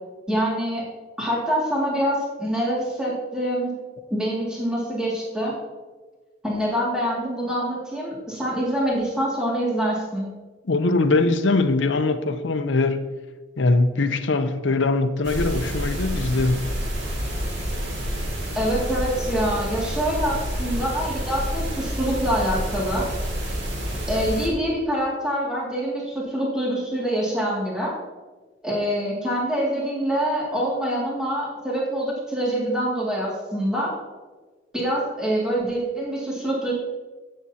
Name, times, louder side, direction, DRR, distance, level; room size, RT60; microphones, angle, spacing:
voice 1, 0.3-0.9 1.2-3.7 4.1-5.6 6.4-10.3 18.6-23.1 24.1-27.9 28.6-33.9 34.7-36.7, equal, 5° right, 2.2 m, -25 dB
voice 2, 10.7-13.1 13.6-16.7, left 3 dB, 75° left, 0.7 m, -22 dB
sound 1, 15.2-24.5, equal, 70° right, 2.5 m, -28 dB
15.0 x 7.4 x 2.8 m
head